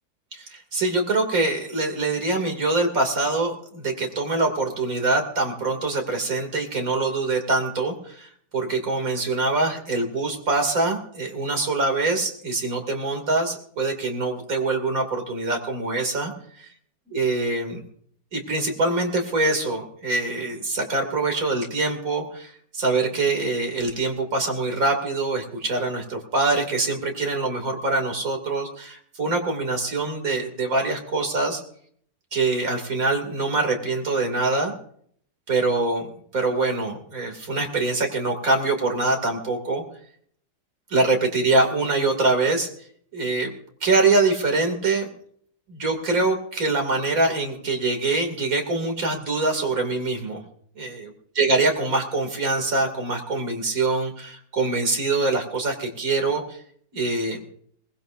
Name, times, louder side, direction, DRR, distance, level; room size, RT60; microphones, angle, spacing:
voice 1, 0.3-16.3 17.1-17.8 18.3-31.6 32.3-34.7 35.5-39.8 40.9-42.7 43.1-43.5 43.8-45.1 45.7-50.4 50.8-51.1 51.4-56.6 56.9-57.4, right 3 dB, 55° right, 3 dB, 3.2 m, -24 dB
23.0 x 19.5 x 2.7 m, 0.62 s
omnidirectional pair, 1.8 m